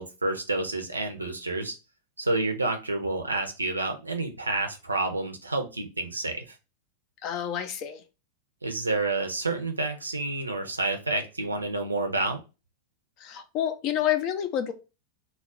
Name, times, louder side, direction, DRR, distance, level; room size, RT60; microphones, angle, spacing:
voice 1, 0.0-1.8 2.2-6.5 8.6-12.4, right 2 dB, 80° right, 5 dB, 0.5 m, -29 dB
voice 2, 7.2-8.0 13.2-14.7, left 10 dB, 40° left, 9 dB, 0.4 m, -28 dB
2.3 x 2.0 x 3.7 m, 0.30 s
figure-of-eight pair, 90°, 0 cm